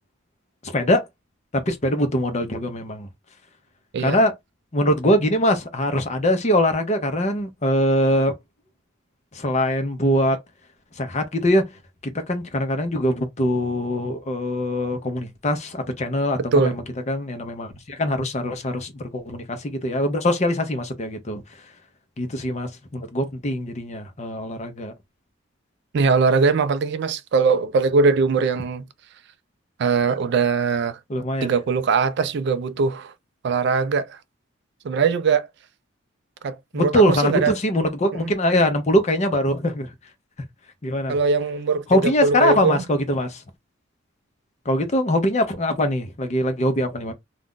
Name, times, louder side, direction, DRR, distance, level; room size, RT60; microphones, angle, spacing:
voice 1, 0.6-1.0 1.5-3.1 4.0-4.3 4.7-8.3 9.3-10.4 11.0-11.7 12.1-21.4 22.2-24.9 31.1-31.5 36.7-39.9 40.8-41.2 41.9-43.4 44.7-47.1, left 1 dB, 35° left, 0.6 m, -22 dB
voice 2, 25.9-28.8 29.8-31.0 31.4-33.1 33.4-34.2 34.8-35.5 36.4-37.5 38.2-38.3 41.1-42.8, right 4 dB, 55° right, 0.3 m, -21 dB
2.4 x 2.1 x 3.7 m
head